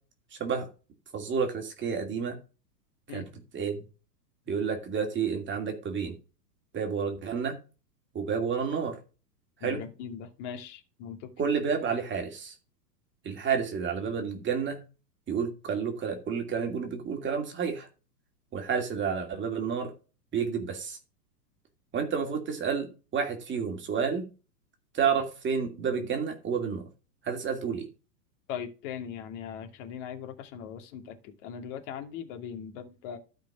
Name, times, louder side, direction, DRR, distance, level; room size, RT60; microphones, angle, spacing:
voice 1, 1.1-2.4 3.1-3.2 3.5-3.8 4.5-6.1 6.7-7.6 8.1-9.0 9.6-9.8 11.4-12.5 13.2-14.8 15.3-17.9 18.5-19.9 20.3-21.0 21.9-24.2 24.9-26.8 27.2-27.9, right 6 dB, 25° right, 4 dB, 2.5 m, -30 dB
voice 2, 9.6-11.3 28.5-33.2, left 8 dB, 45° left, 6 dB, 2.6 m, -40 dB
12.0 x 5.3 x 6.0 m, 0.33 s
hypercardioid pair, 115°, 49 cm